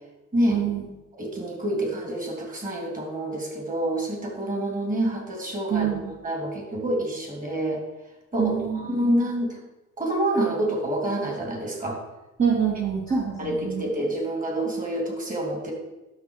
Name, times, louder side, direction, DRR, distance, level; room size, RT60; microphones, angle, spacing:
voice 1, 0.5-0.9 5.7-6.1 8.4-9.0 12.4-13.8, right 7 dB, 40° right, -4 dB, 2.2 m, -26 dB
voice 2, 1.2-7.8 8.3-9.6 10.0-12.0 13.4-15.7, right 1 dB, 25° right, 0 dB, 3.4 m, -27 dB
12.0 x 6.4 x 4.9 m, 1.0 s
cardioid pair, 90°, 30 cm